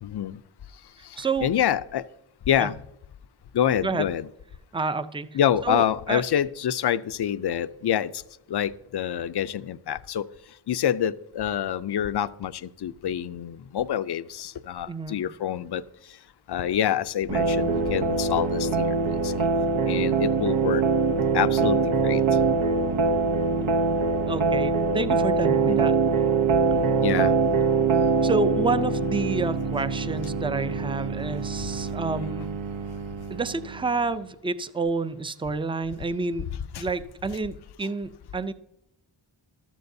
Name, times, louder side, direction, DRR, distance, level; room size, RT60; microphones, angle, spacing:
voice 1, 0.0-0.4 1.0-2.0 2.5-2.8 3.5-4.3 5.3-8.2 8.5-10.2 10.7-15.8 16.5-19.0 19.2-19.5 19.9-20.8 21.3-22.2 25.7-25.9 27.0-27.3 36.7-36.9, left 10 dB, 55° left, 14 dB, 0.5 m, -26 dB
voice 2, 1.2-1.5 2.6-2.7 3.8-4.1 4.7-5.3 5.6-6.2 14.9-15.2 24.3-25.9 28.2-32.5 33.3-36.5 36.8-38.5, right 3 dB, 10° right, 12 dB, 0.4 m, -29 dB
sound 1, 17.3-34.0, right 4 dB, 75° right, 0.9 m, -24 dB
14.5 x 12.5 x 2.7 m, 0.84 s
wide cardioid pair, 105°, 47 cm